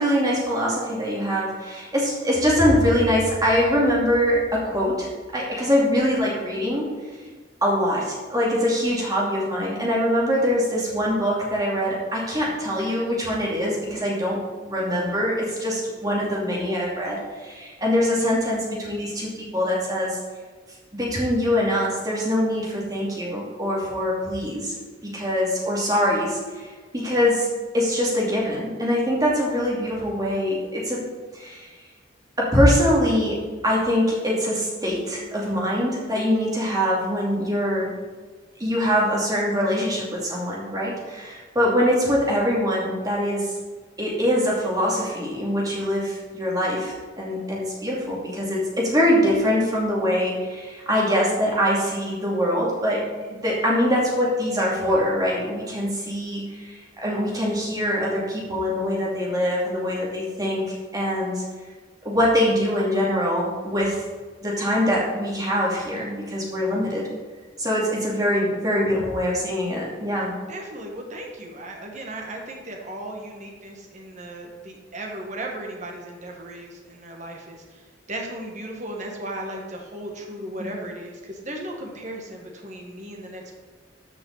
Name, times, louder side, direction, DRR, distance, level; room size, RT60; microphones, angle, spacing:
voice 1, 0.0-6.9 7.6-20.2 20.9-24.7 25.0-26.7 26.9-27.5 27.7-31.0 31.3-31.7 32.4-37.9 38.6-43.6 44.0-53.1 53.4-61.4 62.0-64.0 64.4-67.1 67.6-70.3 80.6-80.7, equal, 20° right, -4 dB, 2.4 m, -23 dB
voice 2, 70.5-83.5, right 1 dB, 40° right, 1 dB, 1.6 m, -36 dB
13.5 x 5.7 x 4.1 m, 1.4 s
head